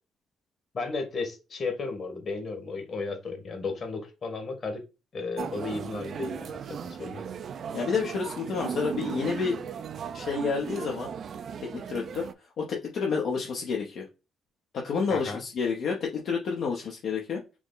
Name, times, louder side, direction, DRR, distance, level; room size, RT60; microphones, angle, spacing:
voice 1, 0.7-4.8 5.1-6.6 7.0-7.3 15.1-15.4, left 4 dB, 45° left, 4 dB, 1.5 m, -34 dB
sound 1, 5.4-12.3, right 7 dB, 60° right, 0.4 m, -36 dB
voice 2, 7.7-9.6 10.1-11.1 11.6-12.3 12.6-14.0 14.7-17.4, left 5 dB, 70° left, 0 dB, 0.8 m, -29 dB
4.7 x 2.0 x 3.8 m, 0.29 s
cardioid pair, 90°, 0 cm